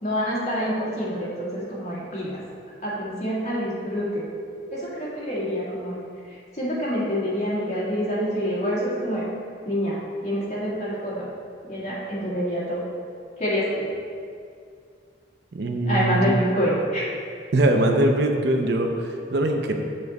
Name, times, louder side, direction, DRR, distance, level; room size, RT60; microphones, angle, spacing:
voice 1, 0.0-2.4 2.8-4.2 4.7-6.0 6.6-9.2 9.7-10.0 10.2-11.3 11.7-12.8 13.4-13.8 15.8-17.0, equal, 35° left, -7 dB, 1.9 m, -26 dB
voice 2, 15.5-16.4 17.5-19.7, right 1 dB, 60° right, 4 dB, 0.6 m, -22 dB
7.0 x 6.2 x 4.1 m, 2.3 s
head